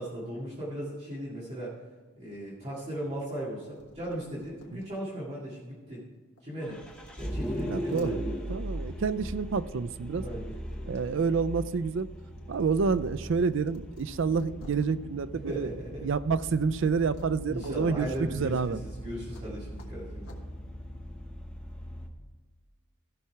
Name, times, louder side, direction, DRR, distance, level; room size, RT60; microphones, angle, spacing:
voice 1, 0.0-1.7 2.2-6.0 6.4-6.8 7.2-8.5 10.1-10.5 15.5-16.1 17.5-20.4, right 1 dB, 30° right, -8 dB, 2.3 m, -37 dB
sound 1, 3.8-4.9 5.4-5.5 6.4-6.5 6.8-8.1 9.4-9.6 10.0-11.0 11.4-14.9 17.1-17.3 17.6-17.7 18.1-18.2 19.3-19.4 19.8-19.9 20.2-20.4, left 1 dB, 80° left, 1.6 m, -53 dB
Vehicle, 6.6-22.1, equal, 5° left, 0.9 m, -39 dB
voice 2, 7.7-8.2 8.5-10.3 10.9-12.1 12.5-15.7 16.0-18.8, right 5 dB, 55° right, 15 dB, 0.4 m, -28 dB
15.0 x 5.7 x 4.7 m, 1.4 s
head